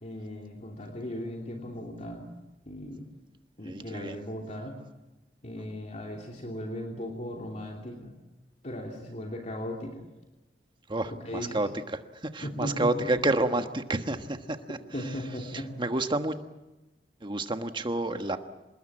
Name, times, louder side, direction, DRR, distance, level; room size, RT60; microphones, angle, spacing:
voice 1, 0.0-2.3 2.7-3.1 3.6-4.7 5.4-8.1 8.6-10.0 11.2-11.6 12.4-13.1 14.9-15.7, equal, 40° left, 0 dB, 3.0 m, -37 dB
voice 2, 3.6-4.2 10.9-14.8 15.5-16.4 17.2-18.4, right 2 dB, 30° right, 7 dB, 1.4 m, -29 dB
27.0 x 21.0 x 8.7 m, 1.0 s
head